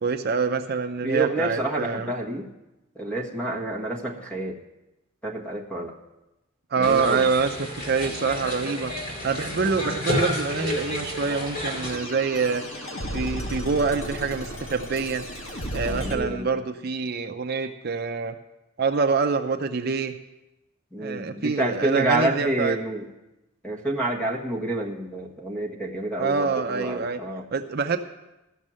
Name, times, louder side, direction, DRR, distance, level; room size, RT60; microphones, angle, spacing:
voice 1, 0.0-2.1 6.7-8.9 9.2-12.6 13.1-15.2 15.7-18.4 18.8-20.2 21.0-22.8 26.2-27.2 27.5-28.0, right 5 dB, 50° right, 6 dB, 0.6 m, -26 dB
voice 2, 1.0-2.5 2.9-4.6 5.2-5.9 6.8-7.3 9.6-10.1 15.8-16.6 20.9-23.1 23.6-27.4, right 2 dB, 5° left, 1 dB, 1.4 m, -28 dB
sound 1, 6.8-12.0, left 1 dB, 45° left, 2.5 m, -30 dB
sound 2, 10.5-16.2, equal, 80° left, 2.0 m, -35 dB
14.0 x 6.4 x 7.5 m, 0.98 s
head